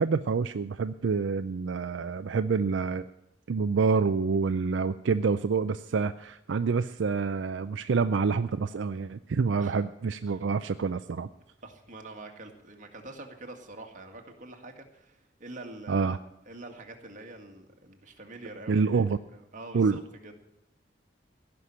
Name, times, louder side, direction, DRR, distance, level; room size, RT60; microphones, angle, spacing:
voice 1, 0.0-3.1 3.5-11.3 15.9-16.2 18.7-19.2 19.7-20.0, right 5 dB, 75° right, 11 dB, 0.4 m, -27 dB
voice 2, 11.6-20.3, right 2 dB, 45° right, 3 dB, 1.9 m, -46 dB
16.5 x 6.0 x 10.0 m, 0.83 s
head